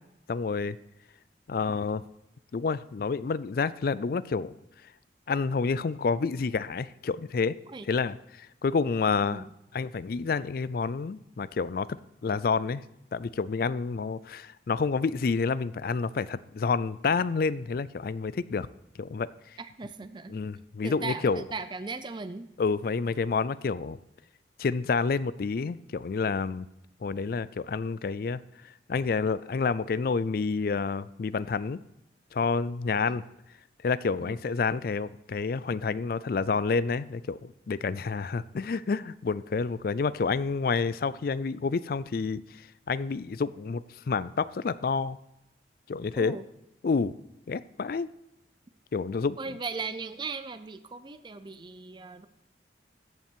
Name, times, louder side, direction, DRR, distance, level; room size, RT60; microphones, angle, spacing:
voice 1, 0.3-0.8 1.5-2.0 2.5-4.5 5.3-7.6 7.9-9.5 9.7-11.9 12.2-12.8 13.1-18.7 19.0-19.3 20.3-21.4 22.6-24.0 24.6-26.7 27.0-28.4 28.9-31.8 32.3-33.2 33.8-42.4 42.9-45.2 45.9-46.4 46.8-47.1 47.5-48.1 48.9-49.4, left 4 dB, 55° left, 17 dB, 0.4 m, -29 dB
voice 2, 19.6-20.4 20.8-22.5 33.1-33.2 34.2-34.4 46.2-46.4 49.4-52.3, right 4 dB, 25° right, 11 dB, 0.4 m, -38 dB
14.0 x 5.8 x 4.5 m, 0.86 s
head